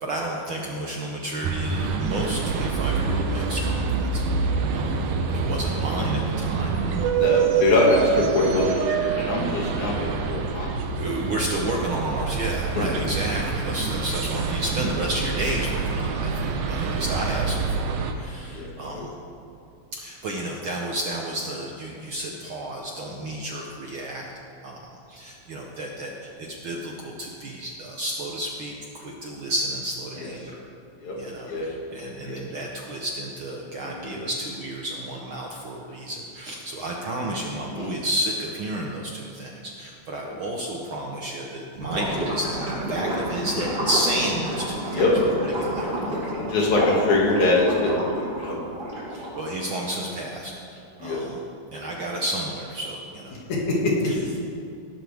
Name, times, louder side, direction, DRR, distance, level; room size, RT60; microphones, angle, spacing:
voice 1, 0.0-7.2 10.9-19.1 19.9-24.3 24.6-30.6 31.2-45.1 45.4-46.0 49.1-51.4 51.7-53.4 54.0-54.2, right 1 dB, 65° right, 0 dB, 1.4 m, -31 dB
sound 1, 1.4-18.1, right 5 dB, 90° right, 2.4 m, -26 dB
voice 2, 7.2-10.7 12.8-12.9 18.5-19.1 30.2-30.3 31.0-31.2 31.5-31.7 32.3-32.4 33.9-34.1 37.7-38.0 40.2-40.4 44.9-45.1 46.4-48.6 51.0-51.2 53.5-54.1 54.4-54.5, left 2 dB, 75° left, -3 dB, 3.6 m, -23 dB
Gurgling / Liquid, 41.7-49.5, right 1 dB, 40° right, 4.8 m, -30 dB
18.5 x 12.0 x 3.5 m, 2.5 s
omnidirectional pair, 3.4 m